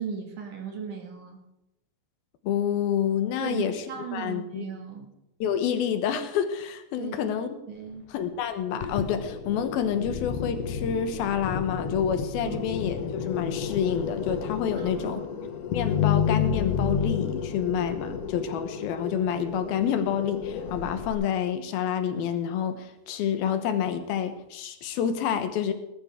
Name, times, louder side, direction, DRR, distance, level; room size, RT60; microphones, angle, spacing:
voice 1, 0.0-1.4 3.4-5.1 7.0-7.3 7.7-8.1 12.4-12.6 14.8-15.5, right 6 dB, 60° right, 1 dB, 3.4 m, -37 dB
voice 2, 2.4-3.8 4.1-4.7 5.4-7.6 8.1-15.2 15.7-25.7, left 8 dB, 85° left, 8 dB, 2.9 m, -28 dB
sound 1, 8.8-21.1, left 7 dB, 65° left, 1.6 m, -31 dB
19.0 x 12.0 x 3.7 m, 0.89 s
omnidirectional pair, 4.3 m